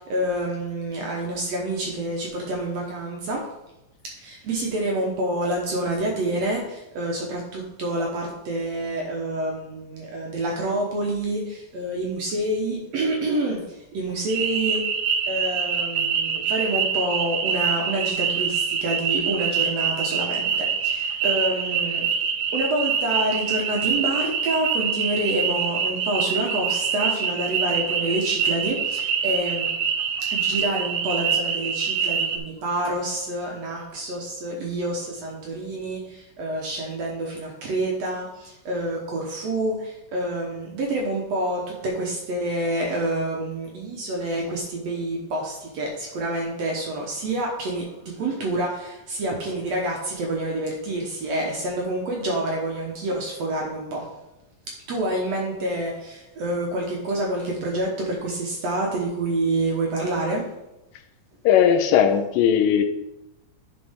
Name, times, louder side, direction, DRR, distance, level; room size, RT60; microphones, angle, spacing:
voice 1, 0.0-3.5 4.1-14.9 15.3-22.1 22.5-29.7 30.3-54.1 54.9-60.5, right 1 dB, 60° right, -1 dB, 1.9 m, -27 dB
sound 1, 14.3-32.4, right 7 dB, 85° right, 2.6 m, -25 dB
voice 2, 61.5-62.8, left 9 dB, 80° left, 7 dB, 2.3 m, -18 dB
10.5 x 4.5 x 3.6 m, 0.92 s
omnidirectional pair, 4.0 m